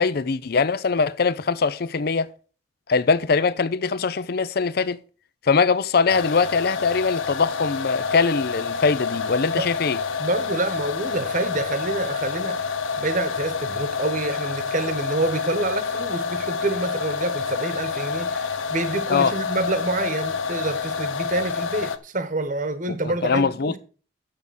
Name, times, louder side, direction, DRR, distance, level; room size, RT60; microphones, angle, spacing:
voice 1, 0.0-2.3 2.9-5.0 5.4-10.0 19.1-19.3 22.9-23.8, left 5 dB, 50° left, 0.5 m, -22 dB
sound 1, 6.1-22.0, left 5 dB, 90° left, 0.8 m, -28 dB
voice 2, 10.2-12.6 13.0-23.8, right 2 dB, 40° right, 1.1 m, -27 dB
9.5 x 6.7 x 6.4 m
head